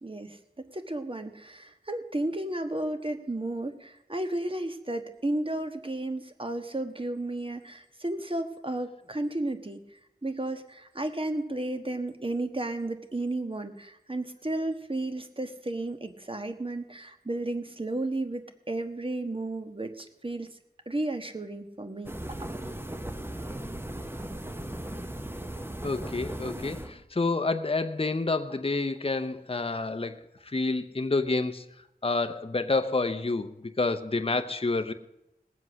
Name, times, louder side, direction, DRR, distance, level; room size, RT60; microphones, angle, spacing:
voice 1, 0.0-9.8 10.2-20.5 20.9-22.1, right 2 dB, 35° right, 7 dB, 1.3 m, -33 dB
sound 1, 22.0-27.0, right 1 dB, 15° right, 1.0 m, -37 dB
voice 2, 25.8-30.2 30.5-31.6 32.0-34.9, left 3 dB, 35° left, 9 dB, 0.7 m, -28 dB
19.5 x 7.7 x 6.2 m, 0.88 s
wide cardioid pair, 50°, 16 cm